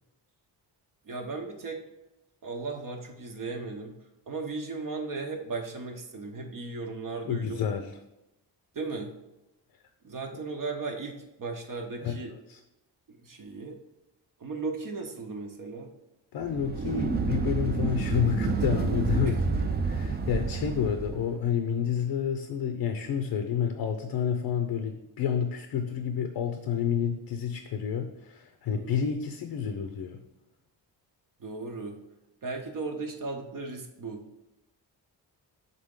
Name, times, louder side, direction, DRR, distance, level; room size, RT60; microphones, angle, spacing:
voice 1, 1.0-1.8 2.4-3.9 4.3-7.6 8.7-9.1 10.0-12.3 13.2-13.8 14.4-15.9 19.2-19.4 28.7-29.0 31.4-32.0 32.4-34.2, right 3 dB, 50° right, 3 dB, 0.8 m, -36 dB
voice 2, 7.2-8.0 12.0-12.6 16.3-30.2, left 7 dB, 65° left, 6 dB, 0.6 m, -29 dB
sound 1, 16.4-21.3, right 4 dB, 25° right, 0.4 m, -29 dB
6.6 x 3.9 x 3.7 m, 0.92 s
cardioid pair, 125°, 42 cm